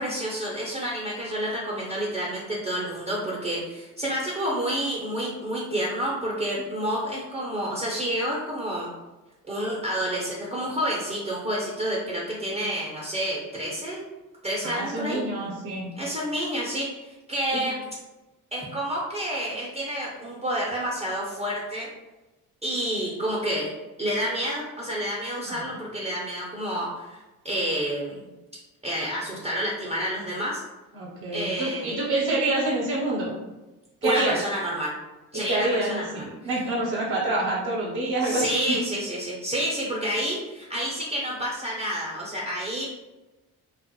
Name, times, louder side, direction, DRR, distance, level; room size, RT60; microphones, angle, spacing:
voice 1, 0.0-8.9 9.5-14.0 14.4-15.2 16.0-16.9 17.3-17.7 18.5-21.9 22.6-23.7 24.0-27.2 27.4-28.2 28.8-30.6 31.3-32.0 34.0-34.9 35.3-36.1 38.2-42.9, equal, 15° right, -5 dB, 0.6 m, -29 dB
voice 2, 14.6-15.9 17.5-17.6 25.5-25.7 30.9-33.3 34.0-34.4 35.3-38.8, right 2 dB, 45° right, -4 dB, 0.8 m, -27 dB
2.3 x 2.0 x 2.9 m, 1.1 s
hypercardioid pair, 45°, 46 cm